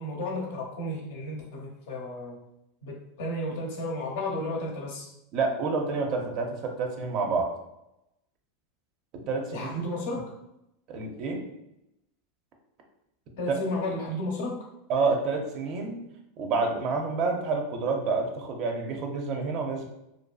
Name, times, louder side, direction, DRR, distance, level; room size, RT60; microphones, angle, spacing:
voice 1, 0.0-2.4 2.8-5.1 9.5-10.3 13.4-14.6, left 1 dB, 75° left, -1 dB, 0.7 m, -33 dB
voice 2, 5.3-7.5 9.3-9.8 10.9-11.4 14.9-16.0 16.4-19.9, right 4 dB, 50° right, 2 dB, 0.6 m, -28 dB
2.6 x 2.3 x 2.2 m, 0.84 s
hypercardioid pair, 100°, 0 cm